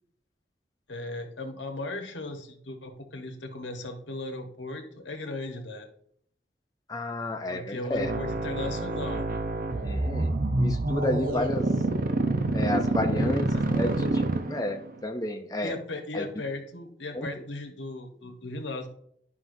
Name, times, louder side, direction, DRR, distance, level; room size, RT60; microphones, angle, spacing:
voice 1, 0.9-5.9 7.5-9.2 13.2-13.7 15.6-18.9, left 2 dB, 85° left, 4 dB, 1.2 m, -37 dB
voice 2, 6.9-8.1 9.8-11.7 12.5-15.8 16.1-16.3 17.1-17.3, left 1 dB, 20° left, 4 dB, 0.5 m, -31 dB
sound 1, 7.9-14.9, right 2 dB, 50° right, 0.7 m, -27 dB
11.5 x 5.5 x 2.7 m, 0.67 s
head